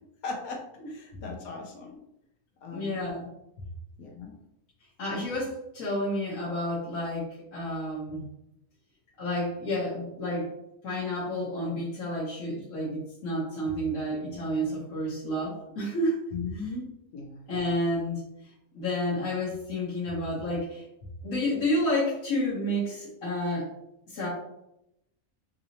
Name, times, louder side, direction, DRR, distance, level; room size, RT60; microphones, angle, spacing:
voice 1, 0.2-0.6 0.9-2.0 2.6-3.0 4.0-4.4 16.3-16.9 17.1-17.4, left 4 dB, 85° left, 1 dB, 1.2 m, -37 dB
voice 2, 2.7-3.3 5.0-8.3 9.2-10.5 10.8-16.2 17.5-18.2 18.7-20.8 21.2-23.7 24.1-24.3, left 1 dB, 70° left, -8 dB, 1.4 m, -30 dB
4.0 x 2.7 x 2.8 m, 0.84 s
omnidirectional pair, 1.5 m